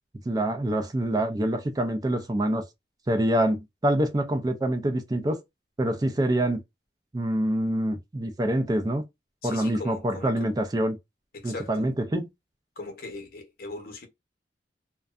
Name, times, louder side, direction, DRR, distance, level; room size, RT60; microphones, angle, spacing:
voice 1, 0.3-2.6 3.1-5.4 5.8-6.6 7.1-9.0 9.4-11.0 11.4-12.3, right 1 dB, 20° right, 0.4 m, -26 dB
voice 2, 9.4-10.5 11.3-11.9 12.8-14.1, left 3 dB, 55° left, 0.8 m, -39 dB
2.5 x 2.2 x 2.3 m
head